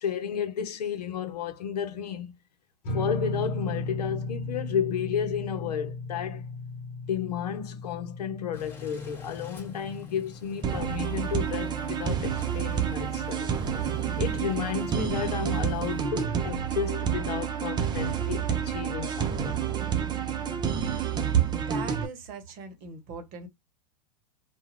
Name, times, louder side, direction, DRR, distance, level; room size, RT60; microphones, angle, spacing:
voice 1, 0.0-2.3 2.9-6.4 7.1-13.5 14.2-19.6, left 8 dB, 80° left, 0.7 m, -32 dB
sound 1, 2.8-10.4, left 2 dB, 45° left, 1.2 m, -36 dB
sound 2, 8.5-16.0, left 5 dB, 10° left, 0.9 m, -46 dB
sound 3, 10.6-22.1, right 8 dB, 20° right, 0.5 m, -29 dB
voice 2, 21.3-23.5, right 9 dB, 45° right, 0.9 m, -33 dB
2.4 x 2.2 x 3.2 m
hypercardioid pair, 110°, 20 cm